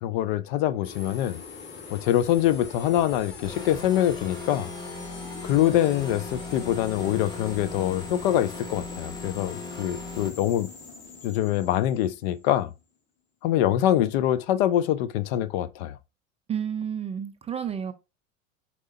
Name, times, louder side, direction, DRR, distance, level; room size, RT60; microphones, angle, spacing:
voice 1, 0.0-1.4 1.9-4.7 5.4-10.7 11.2-12.7 13.4-16.0, left 12 dB, 50° left, 0.6 m, -24 dB
sound 1, 0.8-12.8, left 4 dB, 30° left, 1.9 m, -43 dB
sound 2, 3.4-10.3, left 3 dB, 10° left, 1.0 m, -38 dB
voice 2, 16.5-17.9, right 8 dB, 15° right, 0.4 m, -30 dB
4.7 x 4.2 x 2.7 m
figure-of-eight pair, 80°, 39 cm